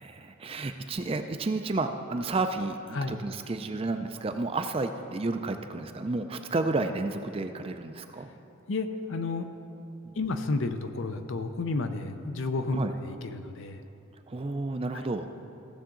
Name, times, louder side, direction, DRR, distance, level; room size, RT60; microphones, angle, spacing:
voice 1, 0.0-8.3 10.0-10.1 12.7-12.9 14.3-15.3, right 3 dB, 25° right, 7 dB, 0.4 m, -31 dB
voice 2, 8.7-9.5 10.2-13.8, left 3 dB, 65° left, 8 dB, 0.6 m, -31 dB
15.5 x 7.0 x 3.8 m, 2.7 s
head